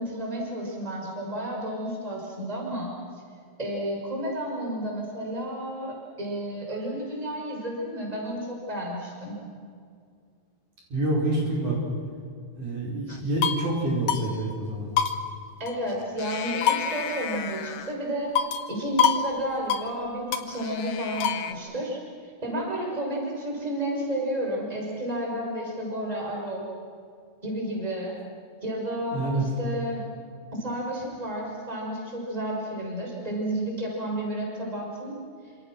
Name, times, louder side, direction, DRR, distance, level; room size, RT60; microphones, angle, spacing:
voice 1, 0.0-2.9 3.6-9.4 13.1-13.2 15.6-18.3 18.7-22.0 22.4-26.6 27.4-28.2 28.6-30.0 30.5-35.2, right 1 dB, 10° right, -1 dB, 5.8 m, -31 dB
voice 2, 10.9-11.8 12.5-14.9 29.1-29.5, right 2 dB, 45° right, -3 dB, 6.4 m, -27 dB
sound 1, 13.1-13.7 14.1-14.2 14.5-14.6 15.0-15.9 16.2-17.9 18.4-18.7 19.0-19.3 19.5-19.9 20.3-21.5, left 8 dB, 60° left, 2.1 m, -27 dB
29.0 x 27.0 x 6.3 m, 2.2 s
omnidirectional pair, 4.8 m